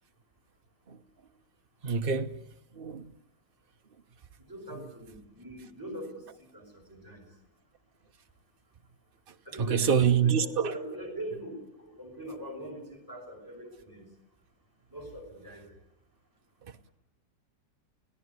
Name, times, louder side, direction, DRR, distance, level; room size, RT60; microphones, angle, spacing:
voice 1, 1.8-2.4 2.8-3.1 9.6-10.7, right 7 dB, 35° right, 1.1 m, -26 dB
voice 2, 4.4-7.4 9.4-14.1 14.9-15.8, right 1 dB, 10° right, 6.0 m, -42 dB
29.5 x 17.5 x 9.8 m
omnidirectional pair, 1.9 m